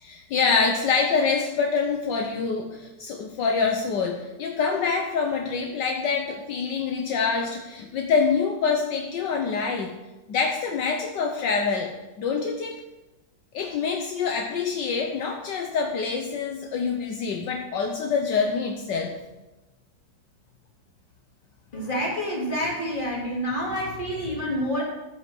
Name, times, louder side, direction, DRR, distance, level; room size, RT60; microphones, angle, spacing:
voice 1, 0.0-10.0 10.3-12.8 13.5-19.1, left 5 dB, 70° left, 3 dB, 1.5 m, -26 dB
voice 2, 21.7-24.8, equal, 25° left, -4 dB, 3.1 m, -28 dB
14.5 x 5.4 x 6.2 m, 1.1 s
omnidirectional pair, 2.0 m